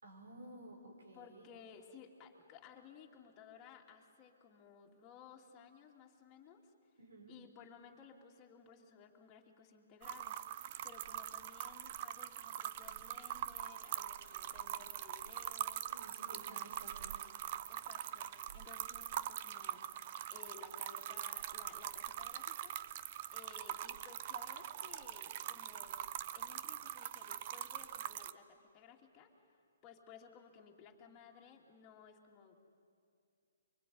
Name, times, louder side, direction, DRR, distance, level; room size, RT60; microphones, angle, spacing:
voice 1, 0.0-1.4 7.0-7.4 15.9-17.2, right 2 dB, 90° right, 0 dB, 5.9 m, -54 dB
voice 2, 1.1-7.0 7.3-15.9 16.3-17.1 17.7-20.0 20.3-22.8 23.3-26.0 26.3-32.6, left 6 dB, 20° left, 0 dB, 2.6 m, -58 dB
sound 1, 10.0-28.3, right 12 dB, 40° right, 0.7 m, -43 dB
24.0 x 24.0 x 9.4 m, 2.3 s
hypercardioid pair, 155°, 0 cm